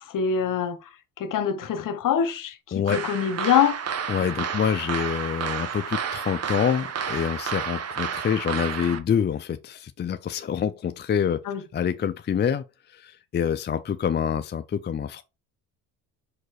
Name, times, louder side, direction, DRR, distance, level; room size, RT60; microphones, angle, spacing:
voice 1, 0.1-0.9 1.2-3.8 11.5-11.6, left 8 dB, 55° left, 1.3 m, -24 dB
sound 1, 2.9-9.0, right 7 dB, 40° right, 1.1 m, -31 dB
voice 2, 4.1-11.4 11.7-15.2, left 8 dB, 25° left, 0.5 m, -26 dB
5.2 x 4.4 x 4.9 m
supercardioid pair, 80°, 39 cm